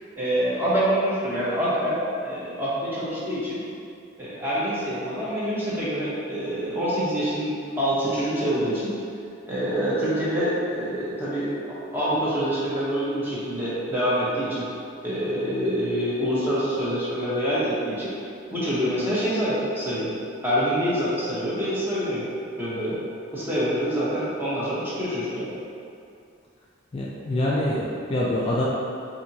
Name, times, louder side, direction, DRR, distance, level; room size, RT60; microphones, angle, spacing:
voice 1, 0.2-2.0 2.2-3.6 4.2-8.9 9.5-11.5 11.9-14.7 15.0-18.1 18.5-20.1 20.4-22.3 22.6-23.0 23.3-25.5, equal, 10° right, -9 dB, 0.8 m, -26 dB
voice 2, 26.9-28.6, left 1 dB, 30° left, -6 dB, 0.3 m, -25 dB
4.2 x 2.6 x 2.7 m, 2.5 s
head